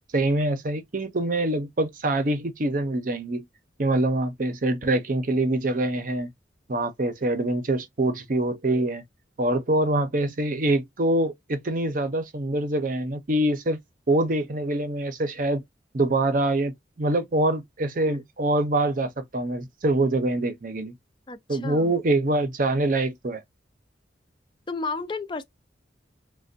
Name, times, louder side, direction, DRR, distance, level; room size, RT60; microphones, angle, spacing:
voice 1, 0.1-3.4 3.8-6.3 6.7-9.0 9.4-13.8 14.1-15.6 15.9-20.9 21.5-23.4, right 1 dB, 45° right, 0.6 m, -25 dB
voice 2, 21.3-21.9 24.7-25.4, left 3 dB, 25° left, 0.4 m, -32 dB
3.3 x 2.2 x 2.5 m
head